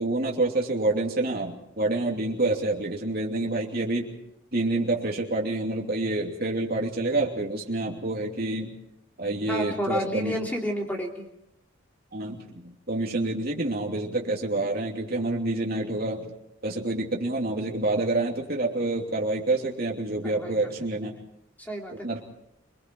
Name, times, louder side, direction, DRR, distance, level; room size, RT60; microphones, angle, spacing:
voice 1, 0.0-4.2 4.5-8.7 9.2-10.3 12.1-16.3 16.6-21.1 21.9-22.2, right 2 dB, 45° right, -1 dB, 3.0 m, -27 dB
voice 2, 9.4-11.3 20.2-20.5 21.6-22.1, equal, 10° left, 0 dB, 3.2 m, -30 dB
27.0 x 22.0 x 4.7 m, 0.80 s
head